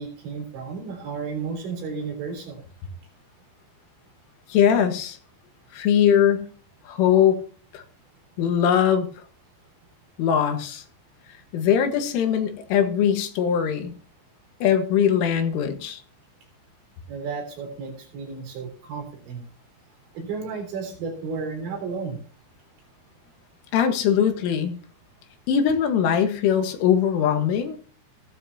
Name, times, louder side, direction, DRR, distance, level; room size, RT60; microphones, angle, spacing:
voice 1, 0.0-2.6 17.1-19.4 20.1-22.2, right 5 dB, 70° right, 2 dB, 6.0 m, -33 dB
voice 2, 4.5-5.2 5.7-6.4 6.9-7.4 7.7-7.8 8.4-9.1 10.2-10.8 11.5-13.9 14.6-16.0 23.7-24.8 25.5-27.8, left 8 dB, 90° left, 6 dB, 4.2 m, -21 dB
17.0 x 12.0 x 2.9 m, 0.42 s
omnidirectional pair, 5.5 m